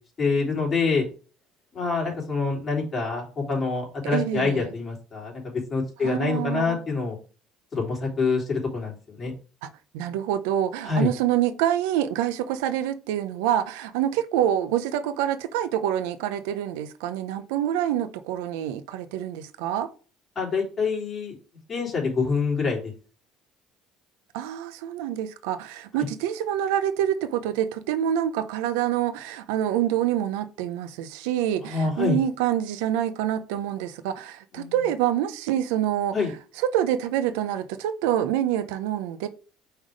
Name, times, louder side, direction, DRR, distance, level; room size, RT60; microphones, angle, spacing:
voice 1, 0.2-1.0 1.7-7.2 7.7-9.3 10.8-11.1 20.3-21.4 21.7-22.9 31.6-32.2 34.5-34.7 36.1-36.3, left 4 dB, 35° left, 3.2 m, -26 dB
voice 2, 4.0-4.7 6.0-6.8 9.6-19.9 24.3-36.1 36.6-39.3, right 11 dB, 90° right, 0.6 m, -26 dB
5.6 x 3.5 x 4.9 m
supercardioid pair, 100°, 0 cm